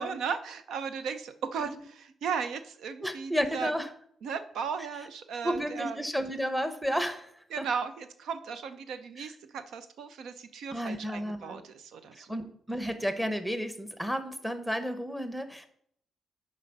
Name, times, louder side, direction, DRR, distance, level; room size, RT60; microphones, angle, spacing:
voice 1, 0.0-3.7 4.2-6.0 7.5-12.3, right 6 dB, 85° right, 10 dB, 0.6 m, -36 dB
voice 2, 3.0-3.9 5.4-7.3 7.6-7.7 9.2-9.3 10.7-11.6 12.2-15.7, equal, 5° right, 8 dB, 1.0 m, -32 dB
8.3 x 5.0 x 5.3 m, 0.65 s
cardioid pair, 105°, 0 cm